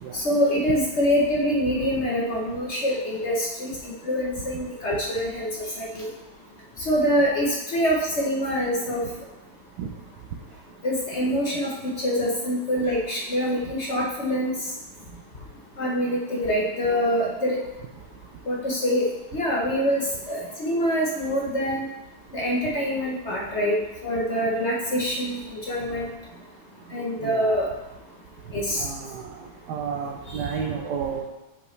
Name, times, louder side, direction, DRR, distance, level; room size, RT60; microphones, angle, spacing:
voice 1, 0.1-5.5 5.8-6.1 6.9-9.1 10.8-11.7 12.0-14.5 15.8-17.6 18.5-19.0 19.3-21.9 22.3-23.8 24.0-26.1 26.9-27.7 28.5-28.8, equal, 45° left, -3 dB, 0.9 m, -25 dB
voice 2, 27.2-27.6 28.8-29.3 29.7-31.2, right 6 dB, 70° right, -1 dB, 1.1 m, -31 dB
7.9 x 5.2 x 3.2 m, 0.97 s
omnidirectional pair, 2.2 m